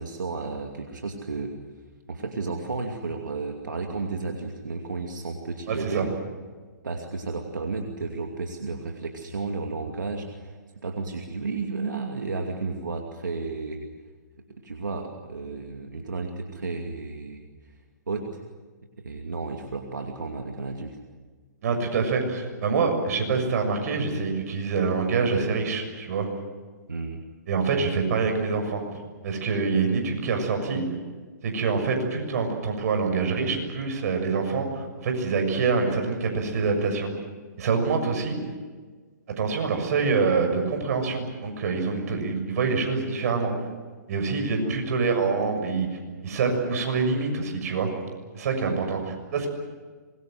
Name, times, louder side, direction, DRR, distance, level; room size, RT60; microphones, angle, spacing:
voice 1, 0.0-1.5 2.1-6.1 6.8-10.5 10.8-13.9 14.6-17.5 18.1-18.4 19.0-21.0 26.9-27.2 44.6-44.7 48.6-48.8, right 3 dB, 90° right, 2 dB, 2.6 m, -32 dB
voice 2, 5.7-6.1 21.6-26.3 27.5-28.8 29.2-30.8 31.4-37.1 37.6-38.4 39.4-43.5 44.1-45.9 46.2-47.9 48.3-49.5, right 4 dB, 55° right, 4 dB, 6.8 m, -25 dB
25.5 x 22.0 x 7.8 m, 1.4 s
hypercardioid pair, 135°, 10 cm